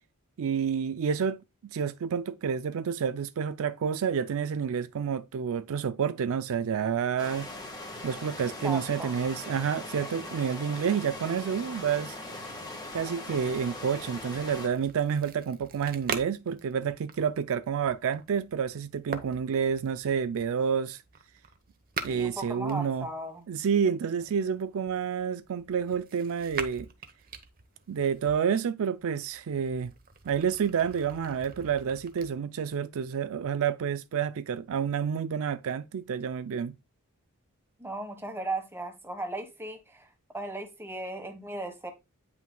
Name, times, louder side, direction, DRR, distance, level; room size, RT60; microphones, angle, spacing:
voice 1, 0.4-7.5 8.0-12.2 12.9-21.0 22.0-23.1 23.5-26.9 27.9-29.9 30.3-36.7, right 7 dB, 65° right, 0.4 m, -29 dB
sound 1, 7.2-14.7, left 2 dB, 20° left, 1.5 m, -40 dB
voice 2, 8.6-9.1 22.1-23.5 37.8-40.1 40.3-41.9, right 2 dB, 10° right, 1.3 m, -36 dB
sound 2, 13.5-23.5 24.2-28.3 28.9-32.3, right 5 dB, 40° right, 0.9 m, -43 dB
9.2 x 5.7 x 2.2 m
head